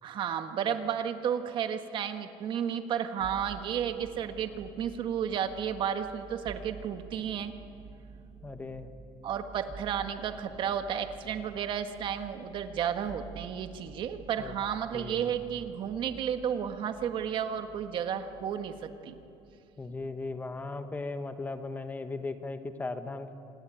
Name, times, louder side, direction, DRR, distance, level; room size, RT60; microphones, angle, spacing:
voice 1, 0.0-7.5 9.2-19.2, right 8 dB, 50° right, 7 dB, 1.5 m, -32 dB
sound 1, 3.2-20.6 21.0-21.7, right 5 dB, 20° right, 1.4 m, -50 dB
voice 2, 8.4-8.9 14.4-14.5 14.9-15.4 19.8-23.3, left 3 dB, 15° left, 8 dB, 1.3 m, -37 dB
26.5 x 19.0 x 9.2 m, 2.7 s
cardioid pair, 135°, 11 cm